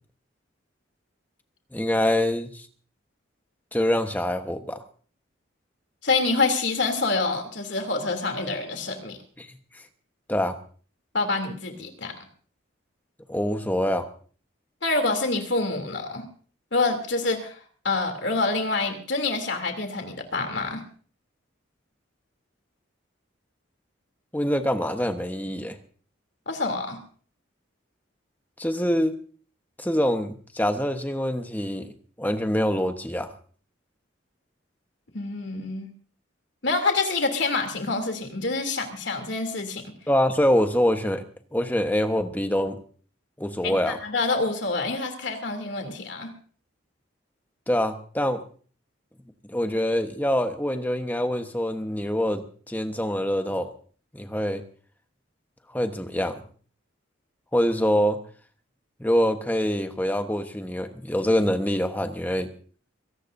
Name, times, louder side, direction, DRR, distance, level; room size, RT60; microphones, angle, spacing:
voice 1, 1.7-2.7 3.7-4.8 9.4-9.5 10.3-10.6 13.3-14.1 24.3-25.8 28.6-29.1 29.8-31.9 32.2-33.3 40.1-41.2 41.5-42.8 43.4-44.0 47.7-48.4 49.5-53.7 54.1-54.6 55.7-56.4 57.5-58.2 59.0-62.5, equal, 10° left, 6 dB, 1.1 m, -25 dB
voice 2, 6.0-9.2 11.1-12.2 14.8-16.3 16.7-17.6 17.8-20.8 26.5-27.0 35.1-35.9 36.6-39.9 43.6-46.3, left 3 dB, 60° left, 5 dB, 3.0 m, -27 dB
24.0 x 17.5 x 2.7 m, 0.43 s
head